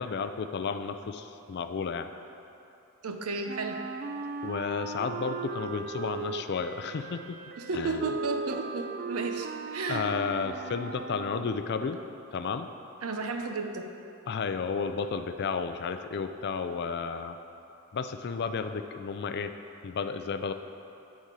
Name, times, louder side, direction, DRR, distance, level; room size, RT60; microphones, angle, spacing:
voice 1, 0.0-2.1 4.4-7.4 7.7-8.0 9.9-12.0 12.3-12.7 14.3-17.4 17.9-19.5 19.8-20.5, left 5 dB, 50° left, 9 dB, 0.4 m, -32 dB
voice 2, 3.0-3.8 7.7-10.1 13.0-13.9, right 3 dB, 75° right, 5 dB, 0.7 m, -33 dB
Wind instrument woodwind instrument, 3.5-11.6, right 5 dB, 45° right, 0.3 m, -38 dB
12.0 x 4.3 x 4.8 m, 2.8 s
head